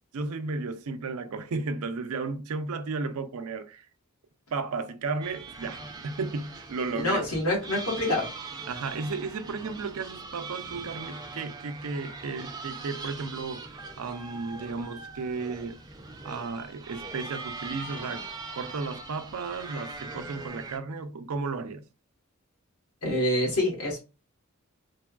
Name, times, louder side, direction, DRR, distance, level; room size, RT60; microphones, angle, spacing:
voice 1, 0.1-3.9 4.5-7.3 8.7-13.6 14.0-15.8 16.2-18.3 18.5-21.9, right 4 dB, 80° right, 0.4 m, -34 dB
sound 1, 5.2-20.8, right 3 dB, 20° right, 0.3 m, -41 dB
voice 2, 6.9-8.3 23.0-24.0, left 1 dB, 85° left, 1.5 m, -26 dB
3.3 x 2.2 x 2.3 m
head